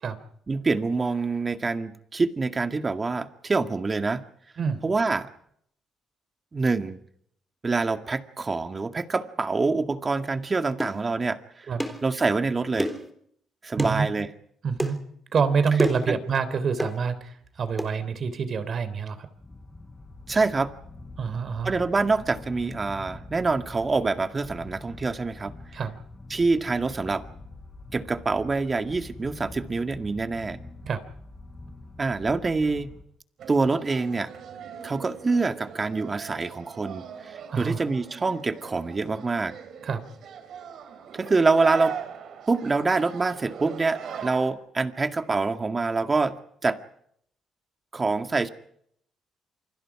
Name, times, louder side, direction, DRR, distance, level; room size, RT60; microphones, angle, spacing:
voice 1, 0.5-4.2 4.8-5.3 6.5-7.0 7.6-11.7 12.0-12.9 13.6-14.3 16.1-16.2 20.3-20.7 21.6-25.5 26.3-27.2 27.9-30.6 32.0-32.9 33.5-34.3 34.8-39.5 41.1-42.0 42.5-46.8 47.9-48.5, right 3 dB, 30° right, 7 dB, 2.1 m, -26 dB
sound 1, 10.8-11.0 11.8-12.1 12.8-13.1 13.8-14.0 14.8-15.0 15.8-16.1 16.8-17.0 17.8-17.9, equal, 5° right, 3.8 m, -28 dB
voice 2, 14.6-15.0 15.3-19.3 21.2-21.7 25.7-26.0 30.8-31.0 37.5-37.8 39.8-40.0, right 5 dB, 50° right, 12 dB, 3.5 m, -27 dB
sound 2, 19.3-33.0, left 2 dB, 20° left, 6.3 m, -45 dB
sound 3, 33.4-44.5, right 7 dB, 70° right, 4.1 m, -40 dB
28.5 x 25.0 x 4.9 m, 0.69 s
cardioid pair, 90°, 0 cm